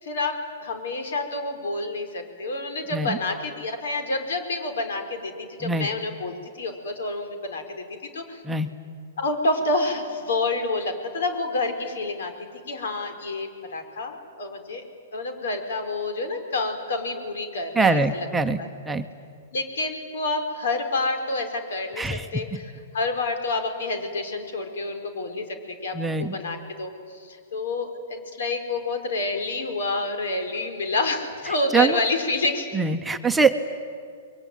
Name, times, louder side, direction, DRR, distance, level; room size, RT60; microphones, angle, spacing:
voice 1, 0.0-8.4 9.2-12.3 12.7-14.8 15.1-18.3 18.6-18.7 19.5-22.6 22.9-32.7, left 2 dB, 80° left, 6 dB, 4.5 m, -28 dB
voice 2, 17.8-18.6 18.9-19.1 22.0-22.3 25.9-26.3 31.7-32.0 32.7-33.7, right 4 dB, 5° right, 6 dB, 0.9 m, -23 dB
29.0 x 22.5 x 9.2 m, 2.2 s
hypercardioid pair, 155°, 0 cm